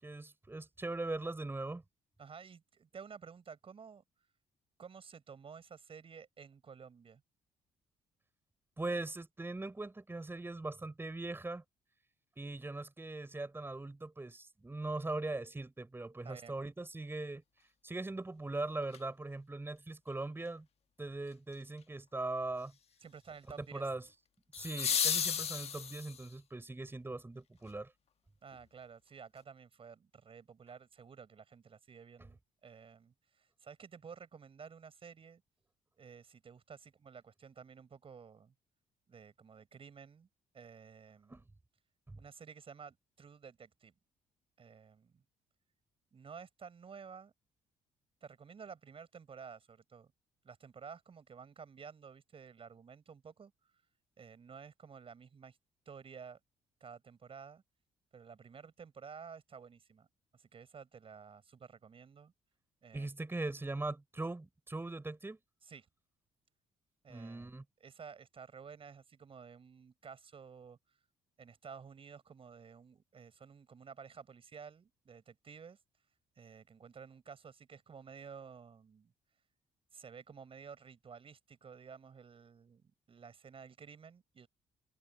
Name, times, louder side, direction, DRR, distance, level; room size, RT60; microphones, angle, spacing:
voice 1, 0.0-1.8 8.8-11.6 12.4-17.4 17.8-20.7 21.0-22.7 23.6-24.0 24.5-27.9 41.3-41.4 42.1-42.2 62.9-65.4 67.1-67.6, right 2 dB, 15° right, 5.9 m, -40 dB
voice 2, 2.2-4.0 4.8-7.2 16.2-16.6 23.0-23.9 28.4-35.4 36.0-38.5 39.1-40.3 40.5-41.4 42.2-43.9 44.6-45.2 46.1-47.3 48.2-50.1 50.4-53.5 54.2-55.6 55.9-56.4 56.8-57.6 58.1-60.1 60.3-62.3 62.8-63.1 65.6-65.9 67.0-67.5 67.8-71.0 71.4-75.8 76.4-79.1 79.9-84.5, right 6 dB, 45° right, 5.5 m, -52 dB
sound 1, 18.9-19.0 24.5-26.3 28.5-28.6, left 7 dB, 50° left, 1.4 m, -33 dB
cardioid pair, 80°, 14 cm